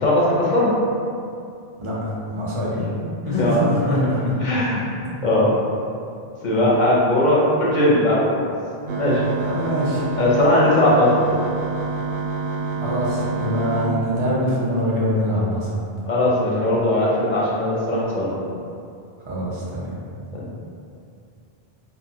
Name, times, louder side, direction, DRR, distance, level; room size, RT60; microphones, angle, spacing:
voice 1, 0.0-0.7 3.3-3.6 3.9-4.1 4.4-4.9 5.2-5.5 6.4-8.5 8.9-9.2 10.2-11.4 16.1-18.4 20.3-20.4, left 1 dB, 60° left, -6 dB, 0.6 m, -19 dB
voice 2, 1.8-2.8 3.3-4.4 9.4-10.0 12.8-15.7 19.3-19.9, left 1 dB, 35° right, -6 dB, 0.5 m, -24 dB
sound 1, 8.9-13.9, right 4 dB, 80° right, 0.8 m, -27 dB
2.4 x 2.4 x 2.7 m, 2.5 s
omnidirectional pair, 1.1 m